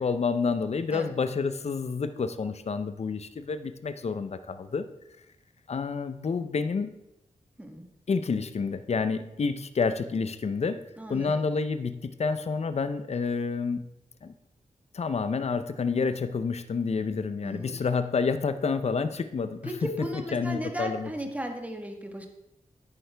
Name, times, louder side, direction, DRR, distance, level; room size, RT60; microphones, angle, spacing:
voice 1, 0.0-4.9 5.7-6.9 8.1-10.8 11.1-13.8 14.2-14.3 14.9-21.1, left 5 dB, 50° left, 11 dB, 0.6 m, -29 dB
voice 2, 11.0-11.5 17.4-17.7 19.7-22.3, equal, 10° right, 3 dB, 1.4 m, -36 dB
10.5 x 9.0 x 3.4 m, 0.87 s
wide cardioid pair, 90°, 14 cm